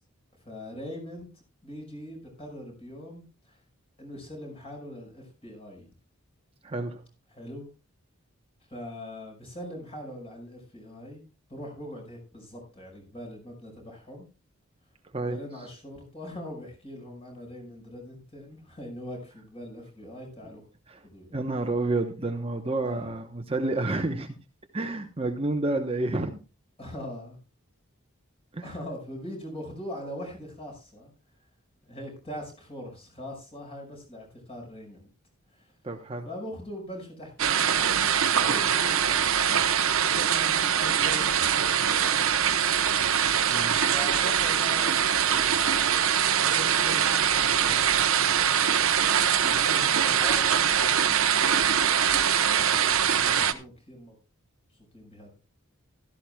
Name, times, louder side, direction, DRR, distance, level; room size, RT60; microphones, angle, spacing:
voice 1, 0.4-1.3 1.6-3.6 4.0-5.9 7.3-7.7 8.7-11.2 11.5-14.3 15.2-20.6 21.0-21.4 22.8-23.1 26.8-27.4 28.6-31.1 31.8-35.1 35.5-35.7 36.2-42.6 43.9-48.1 49.3-51.5 52.6-54.2 54.9-55.3, left 1 dB, 25° left, 1 dB, 5.4 m, -42 dB
voice 2, 6.6-7.0 15.1-15.4 20.9-21.0 21.3-24.4 24.7-26.4 28.5-28.7 35.8-36.3 43.5-43.9, right 2 dB, 25° right, 5 dB, 0.9 m, -29 dB
sound 1, 37.4-53.5, right 8 dB, 75° right, 0.9 m, -23 dB
16.0 x 13.0 x 2.3 m, 0.31 s
head